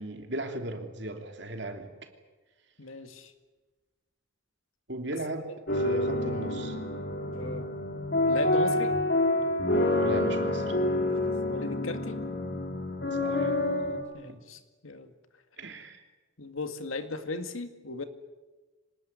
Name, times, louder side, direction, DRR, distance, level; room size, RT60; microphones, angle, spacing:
voice 1, 0.0-1.9 4.9-6.8 10.0-10.8 13.2-13.5 14.3-14.4 15.6-16.0, right 1 dB, 55° right, 5 dB, 3.1 m, -37 dB
voice 2, 2.8-3.3 5.1-5.2 7.3-7.7 8.2-9.0 11.5-12.2 14.1-15.1 16.4-18.0, left 2 dB, 80° left, 8 dB, 2.1 m, -37 dB
sound 1, 5.7-14.0, left 1 dB, 50° left, 3.4 m, -28 dB
25.5 x 19.5 x 9.7 m, 1.3 s
head